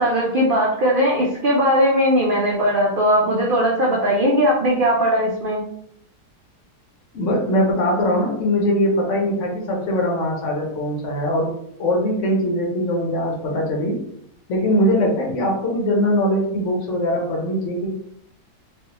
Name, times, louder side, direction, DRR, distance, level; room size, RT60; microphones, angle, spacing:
voice 1, 0.0-5.6, equal, 75° right, -3 dB, 0.4 m, -19 dB
voice 2, 7.1-11.5 11.8-14.0 14.5-17.9, equal, 60° left, -1 dB, 0.9 m, -21 dB
3.4 x 2.4 x 2.9 m, 0.72 s
omnidirectional pair, 1.7 m